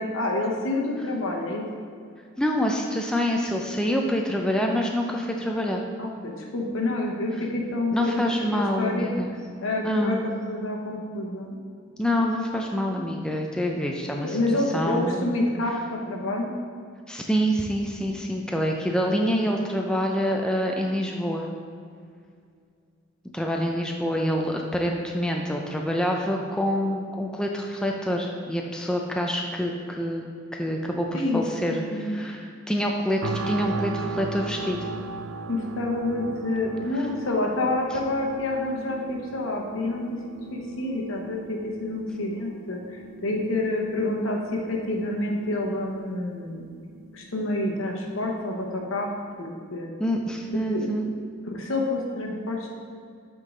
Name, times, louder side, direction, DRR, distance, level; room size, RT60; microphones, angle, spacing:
voice 1, 0.0-1.6 6.0-9.1 9.6-10.2 10.5-11.6 14.2-16.5 31.1-31.4 31.7-32.2 35.5-40.2 40.5-46.7 47.1-49.1 49.4-49.9 50.5-50.9 51.4-52.7, left 2 dB, 80° left, 0 dB, 1.0 m, -28 dB
voice 2, 2.4-5.8 7.9-9.3 9.8-10.3 12.0-14.4 14.7-15.3 17.1-21.5 23.3-30.2 30.5-34.9 50.0-51.1, equal, 5° left, 1 dB, 0.4 m, -26 dB
sound 1, 33.2-48.2 48.7-48.9, right 3 dB, 80° right, 0.4 m, -38 dB
7.9 x 3.8 x 3.7 m, 2.2 s
head